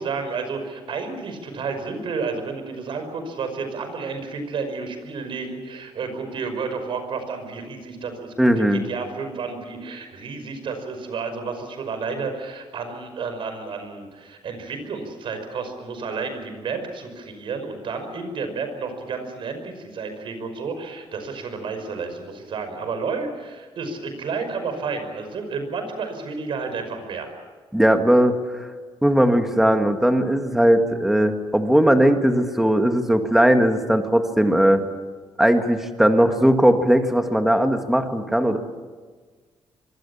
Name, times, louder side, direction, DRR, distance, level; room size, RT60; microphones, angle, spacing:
voice 1, 0.0-27.3, right 4 dB, 60° right, 7 dB, 5.5 m, -31 dB
voice 2, 8.4-8.8 27.7-28.7 29.0-34.8 35.4-38.6, equal, 5° right, 5 dB, 1.8 m, -18 dB
25.0 x 24.5 x 7.2 m, 1.4 s
cardioid pair, 145°, 10 cm